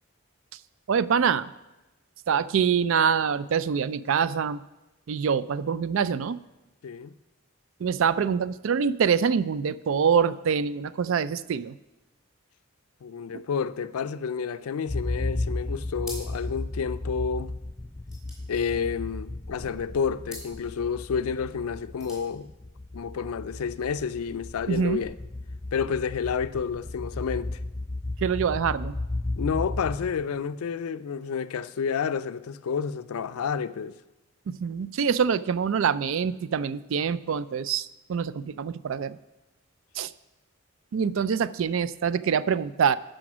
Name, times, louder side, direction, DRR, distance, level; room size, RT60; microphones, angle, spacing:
voice 1, 0.9-1.5 2.3-4.6 5.1-6.4 7.8-11.7 13.3-13.4 24.7-25.0 28.2-28.9 34.5-39.2 40.0-40.1 40.9-43.0, right 7 dB, 65° right, 0.3 m, -25 dB
voice 2, 6.8-7.1 13.0-17.5 18.5-22.5 22.9-25.1 25.7-27.6 29.4-33.9, left 6 dB, 85° left, 0.4 m, -30 dB
sound 1, 14.9-30.5, left 2 dB, 15° left, 0.3 m, -34 dB
sound 2, 16.0-16.6 16.9-17.0 17.2-19.4 20.2-20.6 21.7-22.3, equal, 5° right, 3.1 m, -44 dB
12.0 x 5.0 x 6.1 m
head